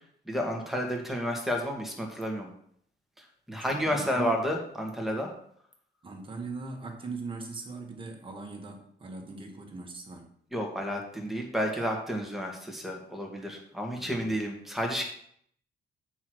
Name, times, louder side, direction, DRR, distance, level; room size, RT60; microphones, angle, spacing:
voice 1, 0.3-2.5 3.5-5.3 10.5-15.0, equal, ahead, 1 dB, 1.8 m, -31 dB
voice 2, 3.7-4.3 6.0-10.3 13.9-14.4, right 3 dB, 30° right, 2 dB, 1.7 m, -40 dB
8.4 x 4.8 x 6.2 m, 0.65 s
cardioid pair, 155°, 18 cm